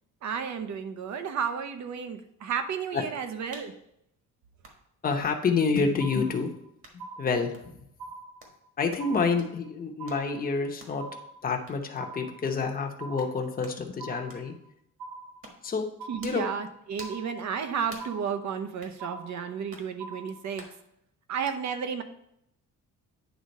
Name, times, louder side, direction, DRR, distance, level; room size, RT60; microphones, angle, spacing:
voice 1, 0.2-3.7 16.1-20.6 21.3-22.0, right 7 dB, 60° right, 8 dB, 0.8 m, -32 dB
sound 1, 3.5-3.7 4.6-4.8 5.7-5.9 6.8-7.0 7.5-7.7 8.4-8.6 8.9-9.1 9.4-9.6 10.1-10.2 10.8-11.0 11.7-11.8 12.5-12.6 13.2-13.3 13.6-13.8 14.3-14.5 15.4-15.7 16.2-16.5 17.0-17.2 17.9-18.1 18.8-19.0 19.7-19.9 20.6-20.8 21.5-21.6, right 2 dB, 40° right, 1.5 m, -48 dB
voice 2, 5.0-6.5 6.9-7.8 8.8-11.0 11.4-14.5 15.6-15.9 16.2-16.5, left 4 dB, 25° left, 3 dB, 0.8 m, -28 dB
sound 2, 6.0-6.7 7.0-7.7 8.0-8.7 9.0-9.7 10.0-10.7 11.0-11.7 12.0-12.7 13.0-13.7 14.0-14.7 15.0-15.7 16.0-16.7 17.0-17.7 18.0-18.7 19.0-19.7 20.0-20.7, right 3 dB, 90° right, 1.1 m, -44 dB
9.3 x 3.7 x 5.3 m, 0.74 s
cardioid pair, 175°, 33 cm